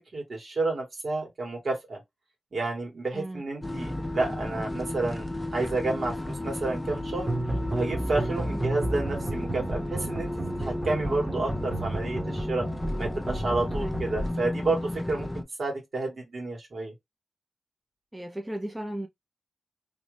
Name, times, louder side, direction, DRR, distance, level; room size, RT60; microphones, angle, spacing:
voice 1, 0.0-2.0 2.5-7.3 7.7-10.3 10.6-12.7 13.0-16.9, right 2 dB, 65° right, 2.0 m, -30 dB
sound 1, 3.6-15.4, left 1 dB, 20° left, 0.4 m, -33 dB
sound 2, 7.3-14.3, right 1 dB, 35° right, 1.3 m, -33 dB
voice 2, 18.1-19.1, right 1 dB, 15° right, 0.7 m, -35 dB
3.1 x 2.5 x 3.3 m
cardioid pair, 65°, 0 cm